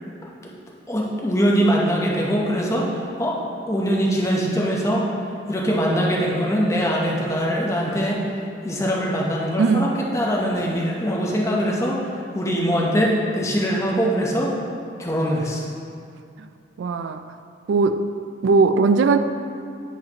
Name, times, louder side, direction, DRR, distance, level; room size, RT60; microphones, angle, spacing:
voice 1, 0.9-3.4 3.7-5.1 5.5-8.2 8.6-12.1 12.3-14.5 15.0-15.6, equal, 15° left, -3 dB, 0.7 m, -22 dB
voice 2, 9.6-9.9 16.4-16.5 16.8-17.3 17.7-18.1 18.4-19.2, right 4 dB, 80° right, 10 dB, 0.3 m, -18 dB
10.0 x 4.2 x 2.9 m, 2.4 s
head